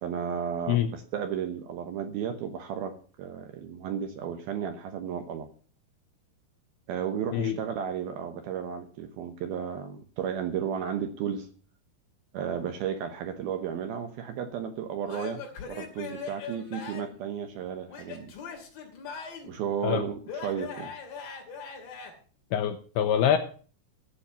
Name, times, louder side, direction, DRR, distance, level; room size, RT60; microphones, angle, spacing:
voice 1, 0.0-5.5 6.9-11.5 12.3-18.3 19.4-20.9, right 8 dB, 70° right, 7 dB, 2.5 m, -33 dB
Male speech man speaking / Yell / Laughter, 15.1-17.2 17.9-19.6 20.3-22.1, left 5 dB, 55° left, 4.1 m, -40 dB
voice 2, 22.5-23.4, left 9 dB, 80° left, 7 dB, 2.4 m, -25 dB
14.5 x 7.3 x 6.8 m, 0.42 s
omnidirectional pair, 5.3 m